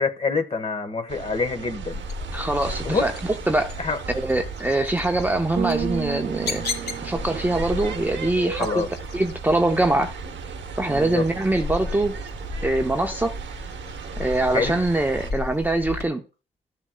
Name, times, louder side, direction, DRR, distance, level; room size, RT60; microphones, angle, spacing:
voice 1, 0.0-2.0 2.8-3.1 3.8-4.0 8.6-8.9 10.9-11.2 14.5-14.8, left 4 dB, 30° left, 1.3 m, -26 dB
sound 1, 1.1-15.3, right 7 dB, 65° right, 1.0 m, -37 dB
sound 2, 1.9-16.1, left 2 dB, 60° left, 3.3 m, -35 dB
voice 2, 2.3-3.1 3.5-3.7 4.1-6.7 7.0-8.8 9.1-10.1 10.8-12.1 12.6-13.3 14.2-16.2, right 2 dB, 10° right, 0.7 m, -23 dB
Bass guitar, 5.6-7.9, right 10 dB, 35° right, 0.4 m, -32 dB
14.0 x 7.0 x 2.3 m
cardioid pair, 90°, 20 cm